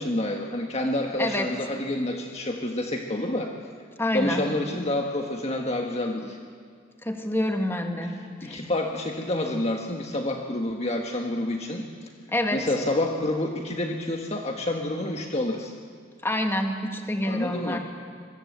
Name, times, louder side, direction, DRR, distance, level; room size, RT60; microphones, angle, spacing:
voice 1, 0.0-3.5 4.1-6.4 8.0-8.1 8.4-11.9 12.5-15.7 17.2-17.8, left 1 dB, 35° left, 2 dB, 1.5 m, -28 dB
voice 2, 4.0-4.4 7.0-8.1 8.4-8.6 12.3-12.6 16.2-17.8, left 1 dB, 10° left, 3 dB, 2.1 m, -27 dB
25.0 x 22.5 x 8.1 m, 2.1 s
head